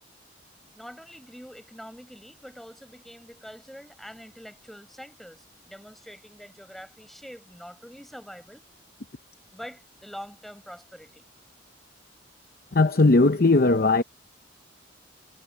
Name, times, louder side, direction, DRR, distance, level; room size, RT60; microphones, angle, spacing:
voice 1, 0.7-8.6 9.5-11.3, equal, ahead, 7.3 m, -45 dB
voice 2, 12.7-14.0, left 3 dB, 50° left, 0.8 m, -18 dB
head